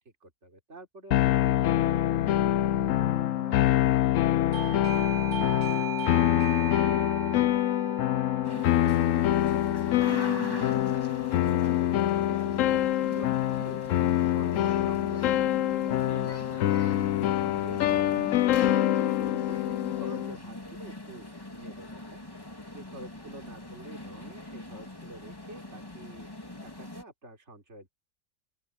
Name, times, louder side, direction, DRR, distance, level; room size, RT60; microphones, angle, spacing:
voice 1, 0.2-5.5 6.0-6.1 6.7-11.1 11.6-12.0 12.3-12.7 13.1-13.8 14.2-16.8 17.6-22.2 22.7-26.3 26.6-27.9, right 2 dB, 45° right, 3.9 m, -48 dB
sound 1, 1.1-20.4, left 13 dB, 65° left, 0.8 m, -25 dB
Doorbell, 4.5-11.0, right 5 dB, 65° right, 2.9 m, -39 dB
sound 2, 8.4-27.0, left 1 dB, 15° left, 2.6 m, -42 dB
open air
omnidirectional pair, 1.7 m